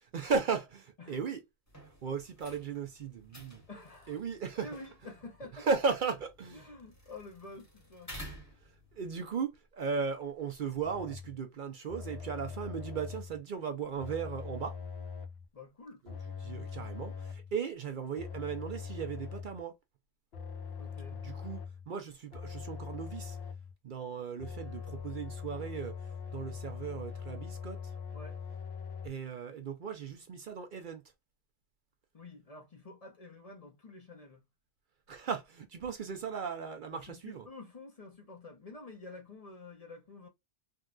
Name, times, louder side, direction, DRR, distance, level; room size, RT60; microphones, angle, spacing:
voice 1, 0.1-1.4 2.0-3.6 4.1-4.7 5.5-6.6 9.0-14.7 16.0-19.7 21.2-21.6 21.9-23.4 23.8-25.9 26.3-27.8 29.0-31.0 35.1-37.4, right 5 dB, 55° right, 0.6 m, -36 dB
voice 2, 1.0-1.3 3.7-4.2 4.6-5.7 6.5-8.4 15.5-16.0 20.8-21.2 28.1-28.4 32.1-34.4 36.9-40.3, left 3 dB, 40° left, 0.7 m, -49 dB
sound 1, 1.7-9.2, equal, 15° left, 1.1 m, -52 dB
sound 2, 10.8-11.4 11.9-13.4 14.0-15.5 16.1-17.5 18.2-19.6 20.3-21.9 22.3-23.7 24.4-29.1, left 6 dB, 70° left, 1.0 m, -42 dB
3.6 x 2.2 x 2.3 m
omnidirectional pair, 1.1 m